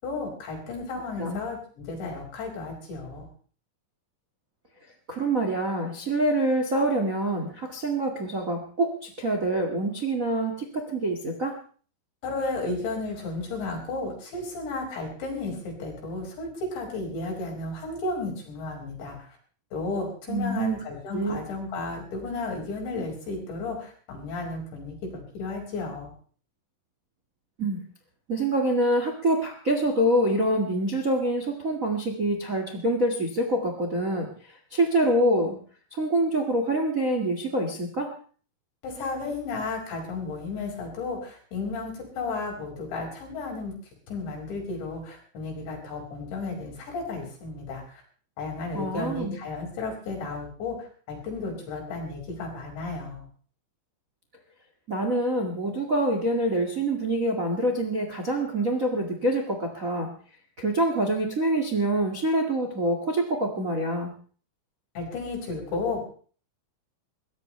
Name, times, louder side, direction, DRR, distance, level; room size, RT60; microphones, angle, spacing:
voice 1, 0.0-3.3 12.2-19.4 19.7-26.1 38.8-43.8 44.1-48.0 48.4-53.2 65.0-66.0, left 3 dB, 80° left, 1 dB, 7.7 m, -33 dB
voice 2, 5.1-11.6 20.3-20.7 21.1-21.4 27.6-27.8 28.3-35.6 35.9-38.1 48.7-49.4 54.9-60.1 60.6-64.1, right 1 dB, 35° right, 3 dB, 1.3 m, -26 dB
22.5 x 18.5 x 3.3 m, 0.43 s
omnidirectional pair, 5.1 m